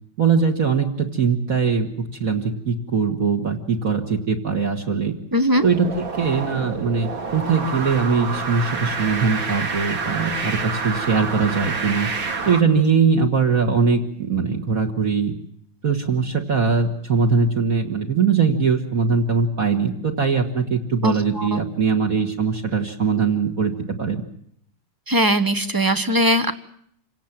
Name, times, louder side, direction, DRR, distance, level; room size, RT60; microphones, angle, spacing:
voice 1, 0.2-5.1 5.6-12.1 12.5-15.3 15.8-24.2, right 5 dB, 45° right, 2 dB, 2.1 m, -21 dB
voice 2, 5.3-5.7 21.0-21.6 25.1-26.5, equal, 20° right, 9 dB, 0.7 m, -20 dB
sound 1, 5.5-12.6, right 4 dB, 80° right, 3.1 m, -28 dB
27.0 x 18.0 x 7.4 m, 0.68 s
omnidirectional pair, 2.1 m